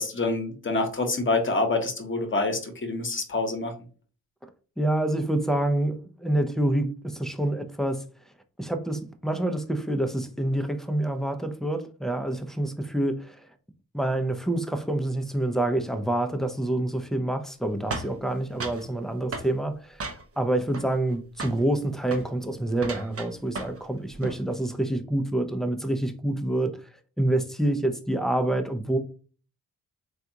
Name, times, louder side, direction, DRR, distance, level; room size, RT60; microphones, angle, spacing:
voice 1, 0.0-3.7, left 3 dB, 30° left, 1.0 m, -26 dB
voice 2, 4.8-8.0 8.6-13.5 13.9-20.0 20.4-26.9 27.2-29.0, right 1 dB, ahead, 0.6 m, -27 dB
sound 1, 17.9-18.9 19.3-19.5 20.0-20.5 20.7-21.1 21.4-21.6 22.0-22.3 22.8-23.9 24.1-24.4, right 3 dB, 35° right, 0.7 m, -35 dB
3.4 x 2.4 x 2.8 m
supercardioid pair, 40°, 38 cm